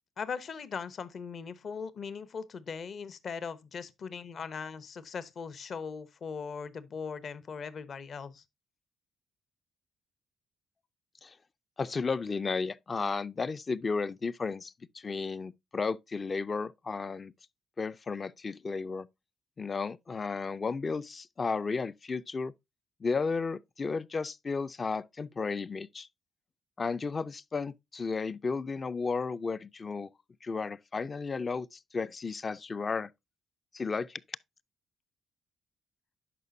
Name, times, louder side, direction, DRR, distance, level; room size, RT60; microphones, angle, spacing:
voice 1, 0.2-8.4, left 6 dB, 50° left, 0.9 m, -39 dB
voice 2, 11.8-17.3 17.8-19.1 19.6-22.5 23.0-26.1 26.8-30.1 30.4-33.1 33.7-34.2, left 4 dB, 35° left, 0.4 m, -33 dB
11.0 x 5.1 x 2.6 m
cardioid pair, 90°, 0 cm